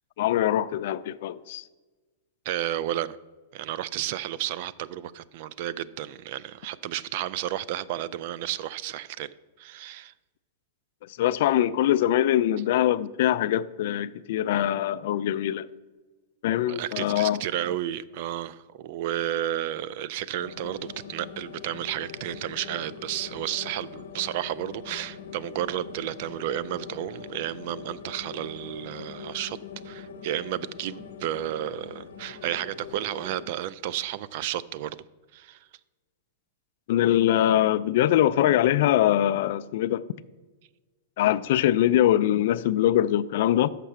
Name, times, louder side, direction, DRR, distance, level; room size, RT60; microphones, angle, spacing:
voice 1, 0.2-1.6 11.2-15.7 16.4-17.4 36.9-40.0 41.2-43.7, left 12 dB, 60° left, 0.3 m, -23 dB
voice 2, 2.5-3.2 3.5-10.1 16.7-29.6 29.8-35.0 35.3-35.7, right 12 dB, 50° right, 0.3 m, -32 dB
sound 1, 20.4-33.5, left 6 dB, 90° left, 0.8 m, -43 dB
6.7 x 5.6 x 7.3 m
supercardioid pair, 150°, 0 cm